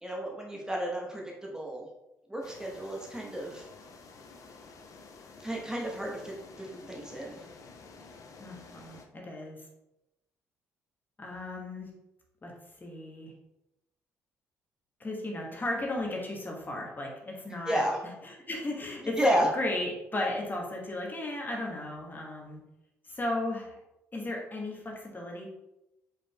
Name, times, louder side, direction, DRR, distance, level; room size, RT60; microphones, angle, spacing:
voice 1, 0.0-1.9 2.3-3.7 5.4-7.5 17.7-18.0 19.1-19.5, equal, 10° right, -1 dB, 1.0 m, -31 dB
sound 1, 2.4-9.1, left 4 dB, 50° left, 0.6 m, -51 dB
voice 2, 8.4-9.6 11.2-11.9 12.4-12.5 12.8-13.3 15.0-17.8 18.2-19.2 19.5-22.6 23.0-23.7 24.1-25.5, left 1 dB, 25° left, 0 dB, 1.1 m, -35 dB
5.0 x 4.0 x 2.2 m, 0.91 s
figure-of-eight pair, 45°, 7 cm